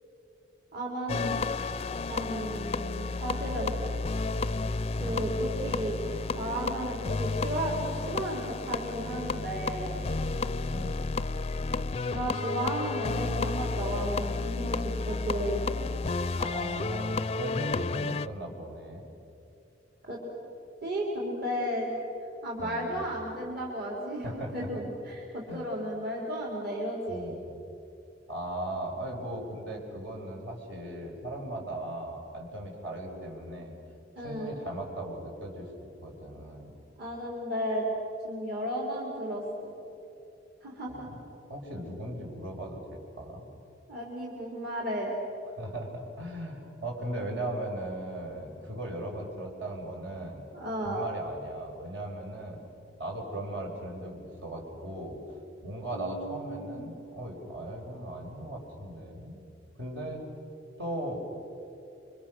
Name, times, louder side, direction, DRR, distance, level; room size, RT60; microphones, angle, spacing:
voice 1, 0.7-1.5 2.1-3.7 5.0-7.8 8.1-10.1 12.1-15.7 20.0-20.2 20.8-21.9 22.4-27.3 34.2-34.6 37.0-37.9 38.2-39.7 40.6-41.1 43.9-45.1 50.5-51.1 55.9-56.9, equal, 60° right, -3 dB, 4.5 m, -34 dB
sound 1, 1.1-18.3, left 3 dB, 35° left, 0.5 m, -32 dB
voice 2, 10.7-11.1 16.4-19.1 22.6-23.1 24.2-24.9 25.5-25.8 27.1-27.5 28.3-33.7 34.2-35.7 36.0-36.7 40.9-41.2 41.5-43.5 45.6-50.4 50.8-52.6 53.0-55.2 55.6-59.5 59.8-60.2 60.8-61.4, right 1 dB, 75° right, -1 dB, 5.7 m, -38 dB
29.0 x 25.5 x 6.5 m, 2.8 s
head